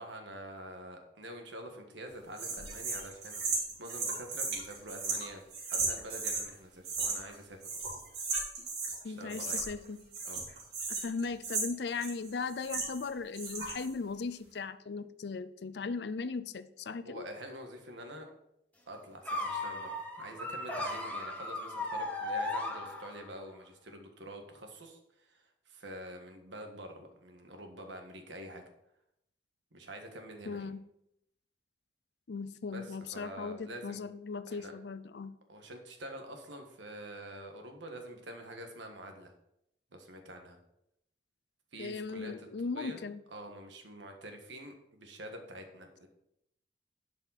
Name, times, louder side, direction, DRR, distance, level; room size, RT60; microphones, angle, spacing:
voice 1, 0.0-3.4 3.8-5.4 5.7-7.9 9.0-9.6 10.2-10.4 17.0-18.3 18.9-28.6 29.7-30.7 32.7-34.0 34.5-34.7 35.5-39.3 39.9-40.6 41.7-43.0 43.3-46.1, right 1 dB, 90° right, 4 dB, 1.5 m, -46 dB
sound 1, 2.4-6.5 6.8-7.4 7.6-9.0 9.3-9.9 10.1-13.1 13.3-13.9, right 4 dB, 60° right, 3.3 m, -35 dB
voice 2, 9.0-10.1 10.9-17.2 30.5-30.8 32.3-35.3 41.8-43.2, left 4 dB, 65° left, 13 dB, 0.5 m, -38 dB
sound 2, 19.2-23.4, left 2 dB, 10° left, 1.1 m, -36 dB
11.5 x 5.3 x 4.1 m, 0.80 s
head